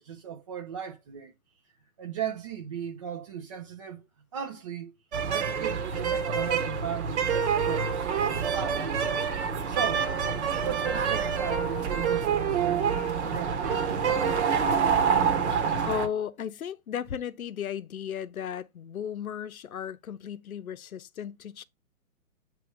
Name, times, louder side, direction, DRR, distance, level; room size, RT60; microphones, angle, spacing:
voice 1, 0.0-1.3 2.0-4.1 4.3-4.9 5.3-7.9 8.5-9.3 9.7-10.1 10.6-14.4, right 8 dB, 25° right, 0.5 m, -37 dB
sound 1, 5.1-16.1, right 6 dB, 50° right, 1.3 m, -27 dB
voice 2, 15.9-21.6, left 8 dB, 75° left, 0.8 m, -35 dB
7.9 x 3.1 x 4.6 m
figure-of-eight pair, 135°, 43 cm